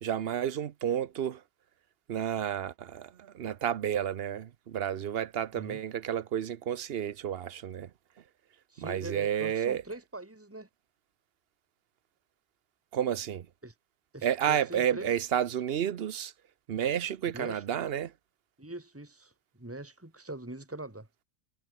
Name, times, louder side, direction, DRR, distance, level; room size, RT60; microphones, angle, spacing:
voice 1, 0.0-1.4 2.1-7.9 8.8-9.8 12.9-13.5 14.2-16.3 16.7-18.1, right 9 dB, 60° right, 0.9 m, -31 dB
voice 2, 8.7-10.7 13.6-13.7 14.1-15.1 17.3-17.9 18.6-21.1, right 2 dB, 10° right, 2.4 m, -42 dB
omnidirectional pair, 1.2 m